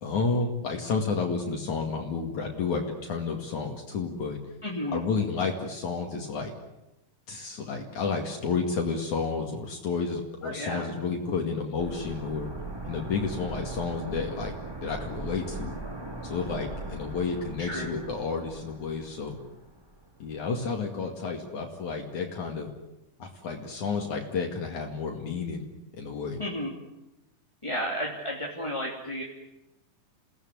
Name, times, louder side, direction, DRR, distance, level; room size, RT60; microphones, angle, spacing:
voice 1, 0.0-4.4 4.9-6.5 7.3-12.5 12.8-14.5 14.8-15.7 16.2-19.4 20.2-22.7 23.2-25.6 25.9-26.4, left 4 dB, 60° left, 2 dB, 3.5 m, -31 dB
voice 2, 4.6-5.0 10.4-10.9 17.6-17.9 26.4-26.7 27.6-29.2, equal, 10° left, -2 dB, 2.6 m, -32 dB
sound 1, 11.8-20.5 20.8-20.9, right 2 dB, 10° right, 1.3 m, -40 dB
28.5 x 18.0 x 9.5 m, 0.96 s
omnidirectional pair, 3.9 m